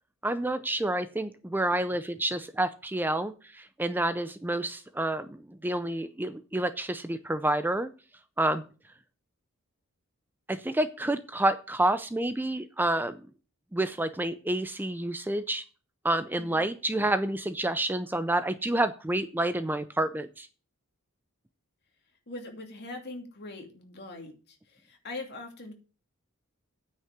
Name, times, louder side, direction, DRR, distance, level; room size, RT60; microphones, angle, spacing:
voice 1, 0.2-7.9 8.4-8.6 10.5-13.2 13.7-15.6 16.0-20.5, right 1 dB, 10° right, 11 dB, 0.5 m, -29 dB
voice 2, 22.3-25.7, left 2 dB, 50° left, 3 dB, 2.6 m, -42 dB
9.4 x 5.5 x 8.0 m, 0.37 s
head